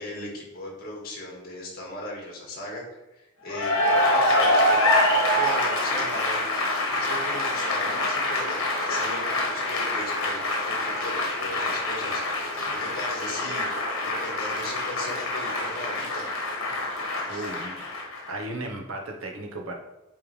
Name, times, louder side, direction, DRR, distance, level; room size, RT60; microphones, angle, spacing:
voice 1, 0.0-6.4 6.9-12.2 12.7-13.6 14.0-16.3 17.3-17.5, left 1 dB, 45° left, -2 dB, 1.8 m, -38 dB
Cheering / Applause, 3.5-18.4, left 1 dB, 80° left, 1.2 m, -25 dB
voice 2, 17.3-17.8 18.3-19.7, right 1 dB, 85° right, 2 dB, 1.1 m, -35 dB
8.8 x 3.4 x 3.3 m, 0.98 s
head